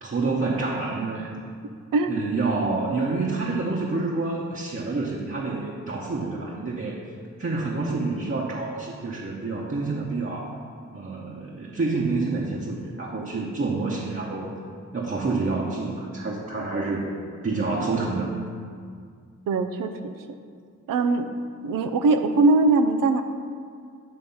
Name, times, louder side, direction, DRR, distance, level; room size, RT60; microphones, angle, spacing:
voice 1, 0.0-1.3 2.1-7.0 7.4-10.6 10.9-14.5 14.9-17.1 17.4-18.3, right 3 dB, 40° right, -4 dB, 1.0 m, -28 dB
voice 2, 19.5-20.2 20.9-21.3 21.6-23.2, right 3 dB, 90° right, 7 dB, 0.5 m, -21 dB
8.7 x 3.4 x 5.4 m, 2.1 s
cardioid pair, 45°, 32 cm